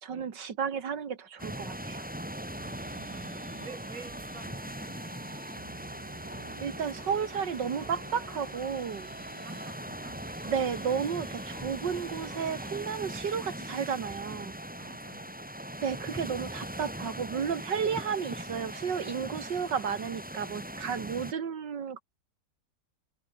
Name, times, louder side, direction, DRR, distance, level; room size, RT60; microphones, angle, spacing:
voice 1, 0.0-2.1 6.6-9.2 10.5-14.6 15.8-22.0, right 7 dB, 80° right, 2.4 m, -33 dB
sound 1, 1.4-21.3, right 1 dB, 5° right, 2.1 m, -40 dB
voice 2, 2.3-2.6 2.9-5.5 9.1-10.2 14.8-15.5, right 5 dB, 50° right, 3.1 m, -51 dB
sound 2, 2.6-12.8, right 3 dB, 25° right, 1.8 m, -51 dB
omnidirectional pair, 1.9 m